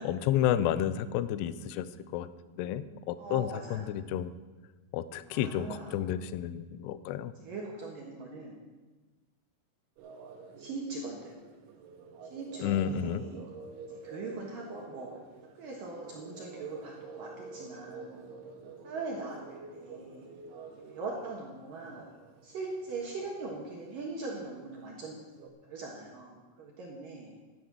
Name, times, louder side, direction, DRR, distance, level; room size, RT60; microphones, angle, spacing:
voice 1, 0.0-1.9 2.1-2.3 2.6-4.3 4.9-7.3 12.6-13.3, left 10 dB, 85° left, 14 dB, 2.4 m, -31 dB
voice 2, 3.2-3.9 5.3-5.9 7.4-8.6 10.6-11.3 12.3-13.4 14.0-15.1 15.6-18.3 18.8-20.3 20.9-22.1 22.4-25.2 25.6-27.3, right 3 dB, 60° right, -2 dB, 2.5 m, -40 dB
sound 1, 10.0-25.5, right 4 dB, 80° right, 3.7 m, -50 dB
12.5 x 9.6 x 6.2 m, 1.2 s
omnidirectional pair, 5.4 m